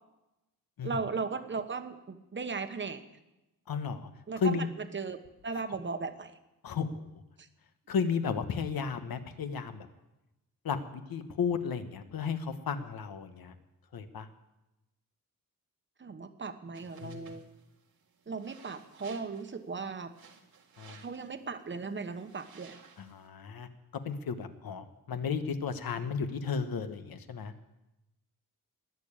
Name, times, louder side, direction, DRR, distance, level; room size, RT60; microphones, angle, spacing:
voice 1, 0.8-3.0 4.3-6.3 7.4-7.5 16.0-17.4 18.3-20.1 21.0-22.8, right 4 dB, 30° right, 9 dB, 1.0 m, -37 dB
voice 2, 3.7-4.1 4.4-4.7 6.6-7.2 7.9-9.9 10.6-13.5 13.9-14.3 17.0-17.3 20.8-21.0 23.0-23.7 24.0-27.5, left 6 dB, 80° left, 9 dB, 1.2 m, -34 dB
sound 1, 16.7-23.3, right 6 dB, 85° right, 2.0 m, -57 dB
20.5 x 7.0 x 8.7 m, 0.98 s
wide cardioid pair, 150°, 35 cm